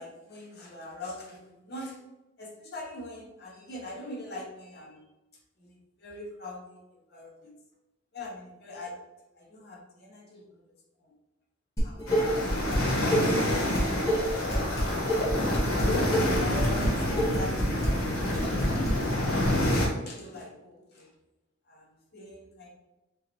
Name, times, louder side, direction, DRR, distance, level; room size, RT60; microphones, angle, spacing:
voice 1, 0.0-2.0 2.4-5.0 5.6-6.8 7.1-7.5 8.1-8.9 9.4-10.6 11.8-12.3 14.5-14.8 15.7-17.9 18.4-19.1 19.6-21.1 21.7-22.7, left 1 dB, 50° left, -2 dB, 0.8 m, -42 dB
Dishes pots and pans, 11.8-12.8 13.1-18.9, equal, 15° left, 1.2 m, -28 dB
sound 1, 12.1-19.9, left 1 dB, 90° left, 1.2 m, -27 dB
3.9 x 3.8 x 2.9 m, 0.98 s
head